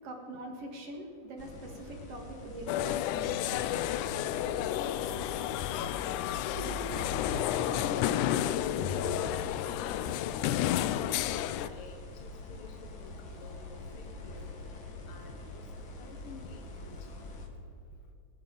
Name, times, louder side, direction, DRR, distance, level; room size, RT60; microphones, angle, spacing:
voice 1, 0.0-3.9 6.5-7.0, right 1 dB, 50° right, 2 dB, 2.5 m, -43 dB
sound 1, 1.4-17.5, left 2 dB, 45° left, 1.8 m, -44 dB
sound 2, 2.7-11.7, left 12 dB, 80° left, 1.8 m, -31 dB
voice 2, 7.4-8.9 9.2-10.8 11.6-13.1 13.4-13.5 13.9-14.5 15.1-15.6 16.0-17.3, left 4 dB, 65° left, 3 dB, 1.4 m, -51 dB
19.5 x 18.0 x 4.0 m, 2.4 s
omnidirectional pair, 4.0 m